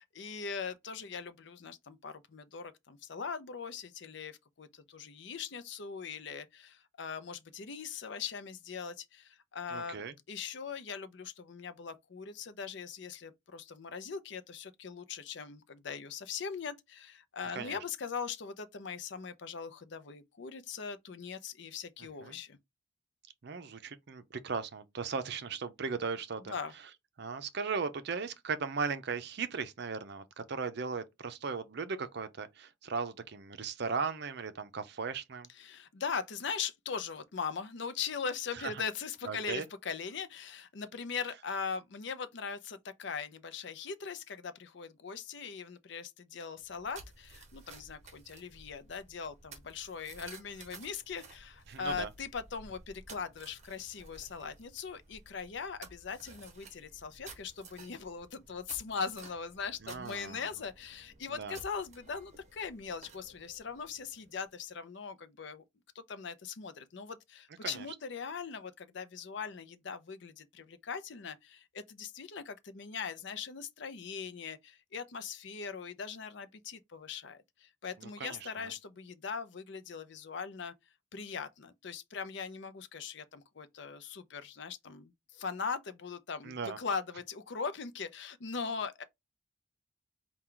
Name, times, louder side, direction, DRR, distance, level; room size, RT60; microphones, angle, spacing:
voice 1, 0.0-10.0 10.3-22.6 26.5-26.7 35.6-65.6 65.9-80.7 81.1-89.0, left 6 dB, 55° left, 0.5 m, -40 dB
voice 2, 9.7-10.1 17.6-17.8 22.2-22.4 23.4-26.5 27.2-35.5 38.5-38.7 39.2-39.7 51.7-52.1 59.8-60.4 61.3-61.6 67.6-67.9 78.0-78.7 86.4-86.8, right 5 dB, 55° right, 0.5 m, -37 dB
digging with a shovel, 46.6-64.5, right 3 dB, 35° right, 0.9 m, -54 dB
4.4 x 2.3 x 3.7 m
head